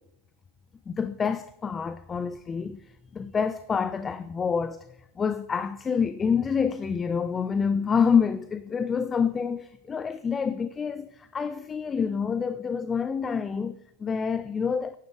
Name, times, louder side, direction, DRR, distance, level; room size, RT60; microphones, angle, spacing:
voice 1, 0.9-2.8 3.1-4.9 5.2-15.0, left 6 dB, 20° left, 0.4 m, -27 dB
11.0 x 10.0 x 3.4 m
figure-of-eight pair, 90°, 0 cm